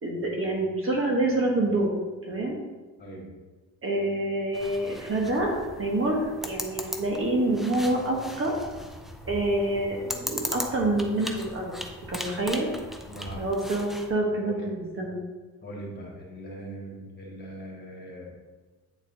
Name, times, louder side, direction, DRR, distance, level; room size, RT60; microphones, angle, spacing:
voice 1, 0.0-1.9 2.2-2.5 3.8-6.2 6.4-8.5 9.3-11.7 12.1-12.7 13.4-15.2, right 2 dB, 40° right, -1 dB, 1.2 m, -27 dB
sound 1, 4.5-14.1, equal, ahead, 0.6 m, -38 dB
voice 2, 13.1-13.4 14.4-14.6 15.6-18.3, right 1 dB, 30° left, -3 dB, 1.9 m, -40 dB
8.3 x 4.0 x 2.8 m, 1.3 s
cardioid pair, 90°, 34 cm